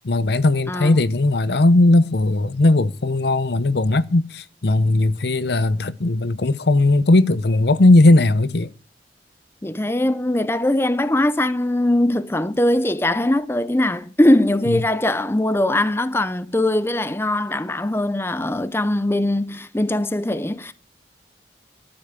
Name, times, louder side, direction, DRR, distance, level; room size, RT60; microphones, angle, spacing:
voice 1, 0.0-8.7 14.7-14.8, left 2 dB, 65° left, 0.7 m, -17 dB
voice 2, 9.6-20.7, left 1 dB, 15° left, 0.6 m, -21 dB
13.5 x 8.0 x 8.2 m
head